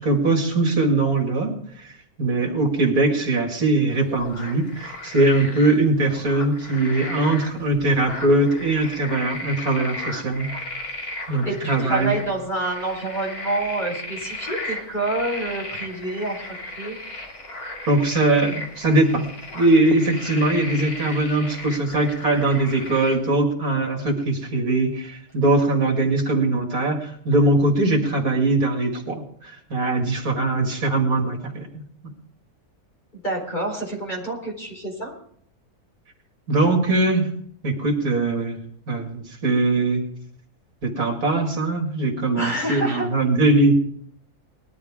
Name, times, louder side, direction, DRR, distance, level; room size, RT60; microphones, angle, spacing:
voice 1, 0.0-1.5 1.8-1.9 2.2-10.5 11.3-12.2 17.9-19.2 19.5-31.8 36.5-37.3 37.6-38.6 38.9-40.0 40.8-43.7, right 2 dB, 70° right, 2 dB, 2.7 m, -21 dB
sound 1, 3.9-23.2, left 1 dB, 75° left, 3.2 m, -36 dB
voice 2, 11.4-17.0 33.1-35.1 42.4-43.1, right 2 dB, 30° left, -1 dB, 4.6 m, -28 dB
20.0 x 12.5 x 3.7 m, 0.64 s
omnidirectional pair, 1.6 m